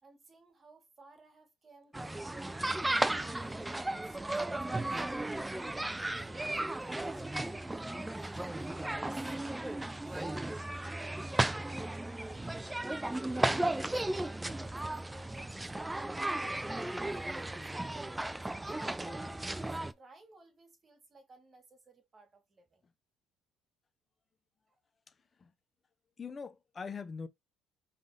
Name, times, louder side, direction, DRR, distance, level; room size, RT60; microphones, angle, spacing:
voice 1, 0.0-5.6 6.2-10.5 10.9-12.6 13.1-22.8 24.7-24.8, right 3 dB, 30° right, 2.0 m, -58 dB
sound 1, 1.9-19.9, right 1 dB, 10° right, 0.3 m, -35 dB
voice 2, 25.1-25.5 26.2-27.3, left 5 dB, 30° left, 0.7 m, -44 dB
4.9 x 3.4 x 2.8 m
cardioid pair, 100°, 0 cm